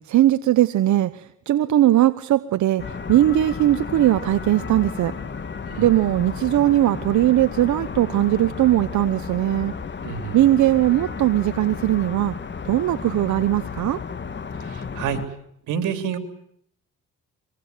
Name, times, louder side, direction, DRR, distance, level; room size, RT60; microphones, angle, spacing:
voice 1, 0.1-2.8 3.1-5.1 5.8-9.7 10.3-12.3 12.6-14.0, right 13 dB, 70° right, 12 dB, 1.0 m, -19 dB
sound 1, 2.8-15.3, left 5 dB, 40° left, 2.2 m, -33 dB
voice 2, 10.0-10.4 14.6-15.2 15.7-16.2, right 8 dB, 90° right, 8 dB, 3.3 m, -28 dB
24.0 x 23.5 x 9.5 m, 0.70 s
cardioid pair, 90°, 30 cm